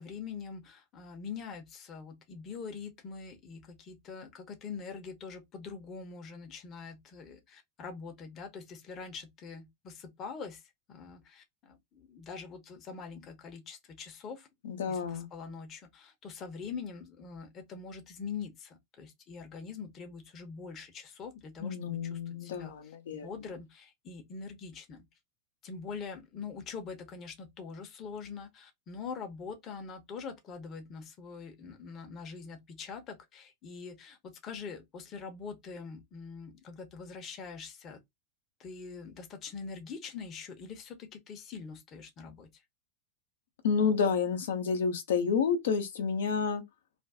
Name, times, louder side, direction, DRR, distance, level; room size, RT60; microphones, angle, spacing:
voice 1, 0.0-14.5 14.8-25.1 25.6-38.0 38.6-42.5, left 5 dB, 35° left, 0.8 m, -44 dB
voice 2, 14.6-15.3 21.6-23.3 43.6-46.6, left 6 dB, 70° left, 0.7 m, -30 dB
2.5 x 2.3 x 3.4 m
hypercardioid pair, 90°, 0 cm